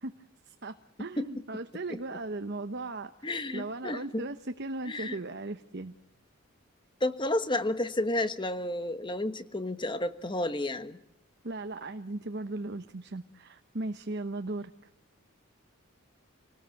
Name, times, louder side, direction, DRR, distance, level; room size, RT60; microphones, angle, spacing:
voice 1, 0.0-5.9 11.4-14.7, right 2 dB, 55° right, 8 dB, 1.0 m, -37 dB
voice 2, 3.2-4.3 4.9-5.2 7.0-11.0, left 1 dB, 25° left, 10 dB, 1.3 m, -31 dB
28.0 x 19.0 x 7.8 m, 0.84 s
head